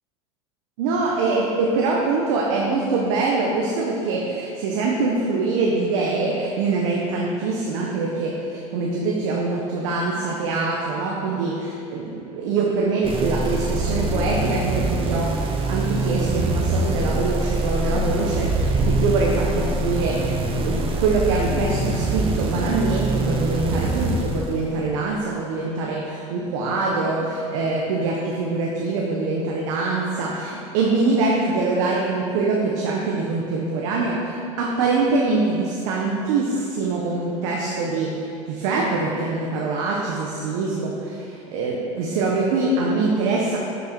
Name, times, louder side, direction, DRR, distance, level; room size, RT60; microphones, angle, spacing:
voice 1, 0.8-20.3 20.6-43.6, right 3 dB, 75° right, -2 dB, 1.2 m, -24 dB
sound 1, 13.0-25.0, right 2 dB, 35° right, 1.1 m, -24 dB
9.7 x 6.9 x 4.6 m, 2.6 s
supercardioid pair, 100°, 16 cm